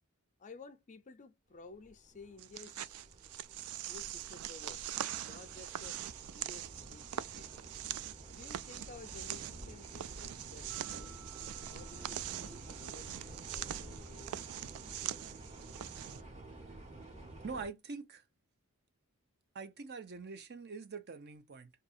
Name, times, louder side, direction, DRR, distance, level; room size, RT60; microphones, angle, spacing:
voice 1, 0.4-2.9 3.7-4.8 5.2-6.0 6.3-7.5 8.4-11.3 11.7-14.4, left 3 dB, 35° left, 0.4 m, -54 dB
sound 1, 1.7-17.7, right 1 dB, 30° right, 1.3 m, -51 dB
sound 2, 2.4-16.2, right 12 dB, 80° right, 0.3 m, -43 dB
sound 3, 10.7-13.8, right 8 dB, 10° right, 1.1 m, -61 dB
voice 2, 17.4-18.2 19.5-21.7, right 4 dB, 50° right, 0.6 m, -44 dB
2.7 x 2.6 x 4.1 m
head